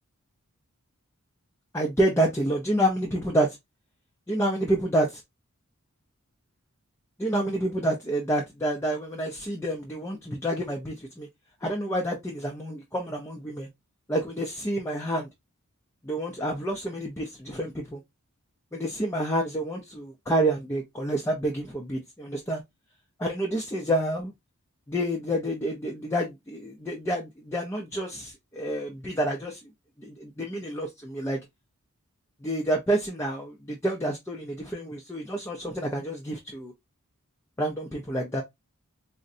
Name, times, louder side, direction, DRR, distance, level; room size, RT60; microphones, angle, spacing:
voice 1, 1.7-3.6 4.3-5.2 7.2-11.3 11.6-13.7 14.1-15.3 16.0-18.0 18.7-22.6 23.2-24.3 24.9-29.7 30.0-31.4 32.4-36.7 37.6-38.4, right 1 dB, 10° left, 0.4 m, -28 dB
3.7 x 2.1 x 2.5 m
head